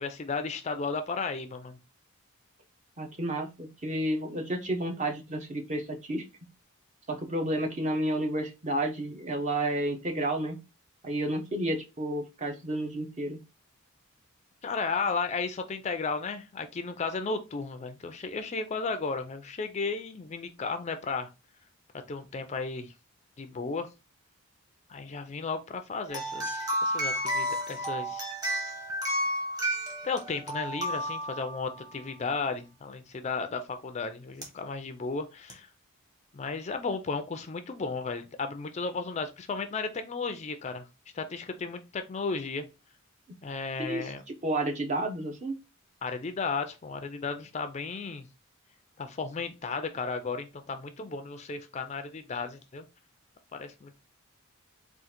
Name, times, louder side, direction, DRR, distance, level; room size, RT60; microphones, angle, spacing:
voice 1, 0.0-1.8 14.6-21.3 22.1-22.9 23.4-23.9 24.9-28.3 30.0-35.7 36.3-40.8 41.1-42.6 43.4-44.2 46.0-48.3 49.0-52.9 53.5-53.9, left 4 dB, 30° left, 8 dB, 0.4 m, -34 dB
voice 2, 3.0-6.2 7.1-10.6 11.0-13.4 43.8-45.6, right 1 dB, 35° right, 5 dB, 0.7 m, -31 dB
sound 1, 26.1-32.1 34.4-34.5 35.5-35.6, equal, 20° right, 1.1 m, -32 dB
3.7 x 2.4 x 4.3 m, 0.27 s
head